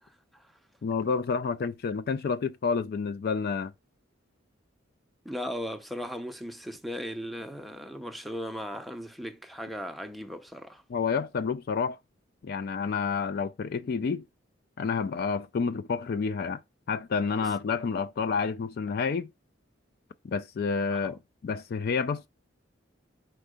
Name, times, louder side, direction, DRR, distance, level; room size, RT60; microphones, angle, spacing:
voice 1, 0.8-3.7 10.9-12.0 12.4-14.2 14.8-16.6 16.9-19.3 20.2-22.3, left 5 dB, 50° left, 0.3 m, -29 dB
voice 2, 5.2-10.8 20.9-21.1, equal, ahead, 0.6 m, -37 dB
4.6 x 4.4 x 5.0 m
head